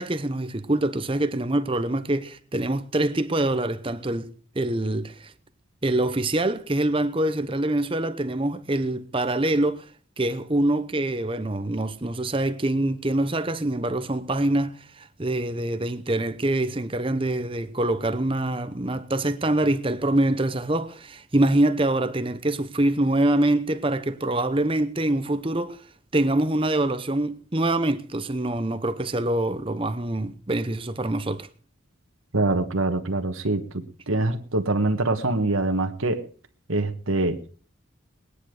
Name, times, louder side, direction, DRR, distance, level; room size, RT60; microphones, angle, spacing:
voice 1, 0.0-5.3 5.8-9.9 10.2-25.8 26.1-31.5, right 1 dB, 25° right, 0.9 m, -25 dB
voice 2, 32.3-36.2 36.7-37.4, right 2 dB, 80° right, 1.5 m, -24 dB
20.5 x 10.0 x 4.9 m
head